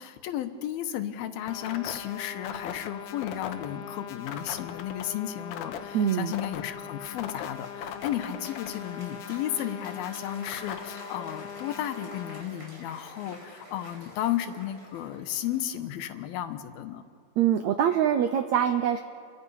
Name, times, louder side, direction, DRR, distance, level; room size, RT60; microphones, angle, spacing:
voice 1, 0.0-17.0, left 11 dB, 85° left, 9 dB, 2.9 m, -34 dB
sound 1, 1.5-12.4, left 8 dB, 70° left, 2.3 m, -39 dB
voice 2, 5.9-6.3 17.4-19.0, right 9 dB, 85° right, 8 dB, 1.6 m, -24 dB
Applause, 7.0-16.4, equal, 15° right, 5.2 m, -49 dB
29.0 x 23.5 x 5.6 m, 2.2 s
omnidirectional pair, 4.2 m